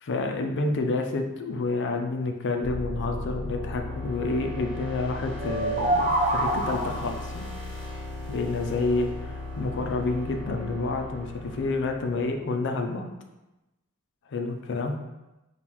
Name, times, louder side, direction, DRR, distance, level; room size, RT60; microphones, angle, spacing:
voice 1, 0.0-7.5 8.3-13.1 14.3-14.9, left 3 dB, 55° left, 4 dB, 0.5 m, -29 dB
sound 1, 2.6-12.4, left 2 dB, 20° left, 0.7 m, -37 dB
sound 2, 5.4-7.2, right 1 dB, 35° right, 0.6 m, -26 dB
5.4 x 2.3 x 3.0 m, 1.0 s
head